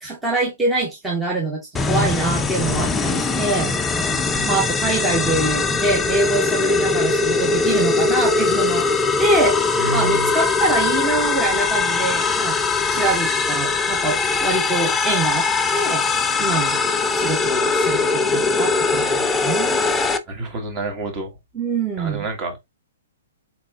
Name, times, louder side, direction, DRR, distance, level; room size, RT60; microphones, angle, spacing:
voice 1, 0.0-3.7 4.5-8.9 9.2-12.6 12.9-16.0 16.4-16.8 17.1-19.8 21.5-22.3, right 2 dB, 10° right, 1.0 m, -24 dB
sound 1, 1.7-20.2, left 4 dB, 10° left, 0.5 m, -21 dB
voice 2, 9.8-10.3 20.3-21.3 22.0-22.7, right 3 dB, 25° right, 1.8 m, -28 dB
4.2 x 4.1 x 2.5 m
hypercardioid pair, 150°, 0 cm